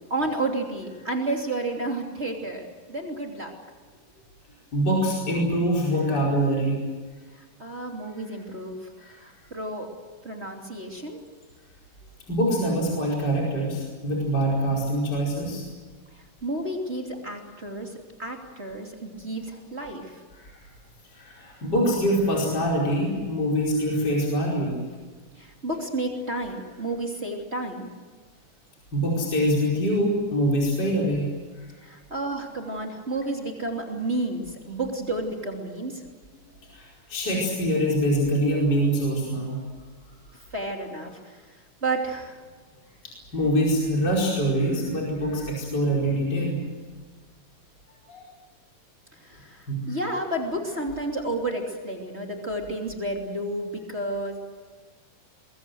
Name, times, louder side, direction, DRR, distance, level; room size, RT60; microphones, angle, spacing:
voice 1, 0.1-3.6 7.6-9.9 10.2-11.2 16.4-17.9 18.2-20.2 25.4-27.9 31.8-36.0 40.5-41.4 41.8-42.4 49.2-54.4, right 2 dB, 20° right, 1 dB, 2.8 m, -31 dB
voice 2, 4.7-6.8 9.0-9.2 12.3-15.6 20.4-20.5 21.1-24.8 28.9-31.3 36.7-39.6 43.3-46.6 48.1-48.2 49.7-50.0, equal, 30° left, -3 dB, 5.4 m, -24 dB
23.5 x 23.0 x 7.9 m, 1.4 s
omnidirectional pair, 4.0 m